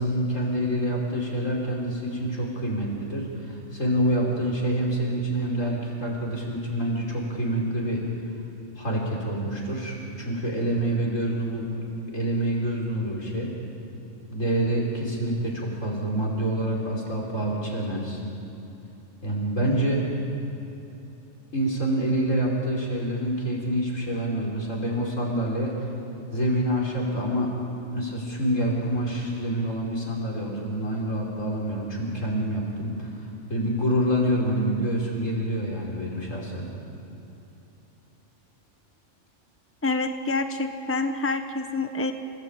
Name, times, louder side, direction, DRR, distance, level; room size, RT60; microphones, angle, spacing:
voice 1, 0.0-8.0 8.8-11.7 12.1-13.5 14.3-18.2 19.2-20.0 21.5-25.9 26.3-27.5 27.9-33.1 33.5-36.7, right 1 dB, 85° left, -2 dB, 5.5 m, -27 dB
voice 2, 39.8-42.1, left 3 dB, 10° left, 6 dB, 1.1 m, -27 dB
28.5 x 17.5 x 8.9 m, 3.0 s
omnidirectional pair, 1.3 m